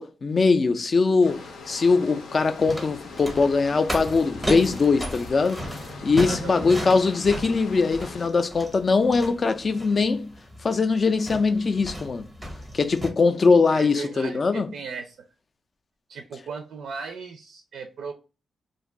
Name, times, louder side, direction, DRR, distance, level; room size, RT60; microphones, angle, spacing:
voice 1, 0.0-1.4 1.7-5.6 6.0-10.3 10.6-12.2 12.7-14.7, left 4 dB, 35° left, 0.3 m, -21 dB
sound 1, 1.2-8.3, left 4 dB, 85° left, 0.6 m, -42 dB
sound 2, 2.4-13.1, equal, ahead, 0.6 m, -35 dB
voice 2, 6.2-6.6 13.7-15.2 16.1-18.1, right 5 dB, 75° right, 0.4 m, -36 dB
2.5 x 2.2 x 3.6 m
wide cardioid pair, 155°, 0 cm